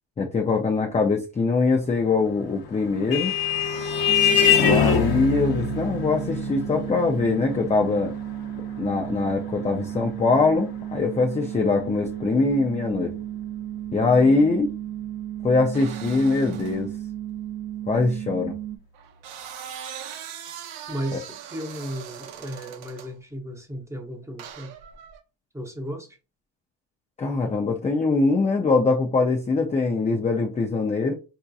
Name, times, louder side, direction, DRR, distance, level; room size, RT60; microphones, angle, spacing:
voice 1, 0.2-3.3 4.6-8.1 8.8-13.1 13.9-14.7 15.4-16.9 17.9-18.5 21.1-21.2 27.2-31.1, left 3 dB, 15° left, 0.3 m, -22 dB
Vehicle horn car horn honking, 2.5-11.5, left 7 dB, 45° left, 0.8 m, -25 dB
sound 1, 4.1-18.8, right 12 dB, 45° right, 0.6 m, -34 dB
sound 2, 15.7-16.8 18.9-23.1 24.4-25.2, right 9 dB, 80° right, 0.7 m, -40 dB
voice 2, 20.9-24.7 25.5-26.2, equal, 5° right, 0.7 m, -35 dB
3.6 x 2.7 x 2.3 m
cardioid pair, 95°, 49 cm